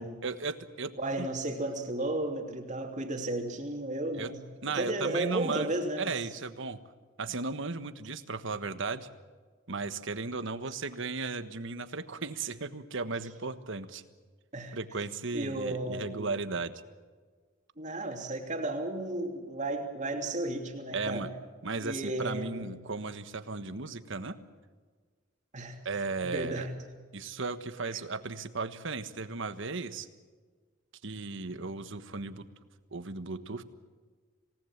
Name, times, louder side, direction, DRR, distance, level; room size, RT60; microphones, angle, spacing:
voice 1, 0.2-1.3 4.2-4.3 4.6-6.8 7.2-9.1 9.7-14.0 14.7-16.7 20.9-21.3 21.6-24.4 25.8-26.7 27.1-30.1 31.0-32.5 32.9-33.6, right 4 dB, 65° right, 11 dB, 1.4 m, -35 dB
voice 2, 1.0-4.4 4.7-6.2 14.5-14.8 15.3-16.3 17.8-21.3 21.8-22.6 25.5-25.8 26.2-26.7, right 2 dB, 35° right, 3 dB, 2.9 m, -34 dB
27.0 x 18.5 x 7.4 m, 1.5 s
head